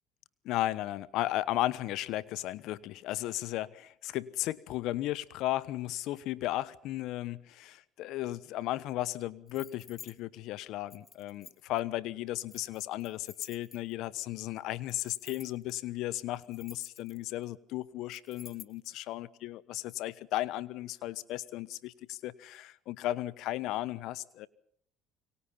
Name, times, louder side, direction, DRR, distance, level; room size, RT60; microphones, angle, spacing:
voice 1, 0.4-24.5, left 15 dB, 70° left, 18 dB, 1.1 m, -35 dB
sound 1, 9.5-10.1 10.9-11.8 12.5-14.0 14.9-15.7 16.3-17.4 18.1-18.9, left 7 dB, 40° left, 1.6 m, -51 dB
27.5 x 24.0 x 5.8 m, 0.65 s
supercardioid pair, 75°, 0 cm